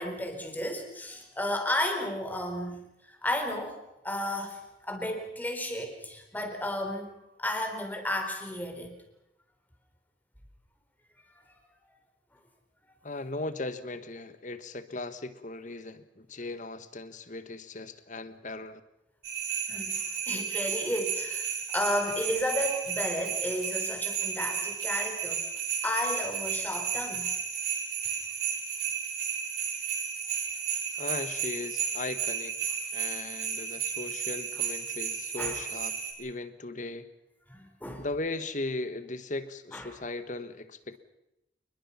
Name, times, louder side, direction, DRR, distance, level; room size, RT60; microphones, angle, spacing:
voice 1, 0.0-2.8 3.1-7.1 7.4-9.0 11.5-11.6 19.7-25.4 25.8-27.3 35.4-35.6 37.5-38.1 39.7-40.0, left 1 dB, 10° left, 3 dB, 4.2 m, -33 dB
voice 2, 13.0-18.8 31.0-37.1 38.0-41.0, left 2 dB, 45° left, 11 dB, 1.5 m, -38 dB
sound 1, 19.2-36.1, right 7 dB, 65° right, 6.9 m, -33 dB
28.5 x 21.5 x 5.8 m, 0.87 s
head